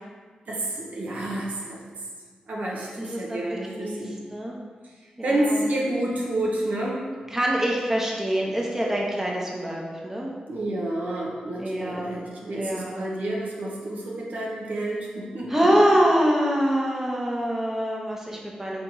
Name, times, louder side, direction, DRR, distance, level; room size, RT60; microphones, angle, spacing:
voice 1, 0.5-1.9 2.5-4.2 5.2-7.0 10.5-15.5, right 1 dB, 70° right, -4 dB, 0.8 m, -29 dB
voice 2, 3.0-4.0 4.3-4.6 5.2-5.6 7.3-10.3 11.6-13.0 15.5-18.8, equal, 15° right, -2 dB, 0.9 m, -25 dB
3.4 x 3.0 x 3.9 m, 1.5 s
cardioid pair, 45°, 3 cm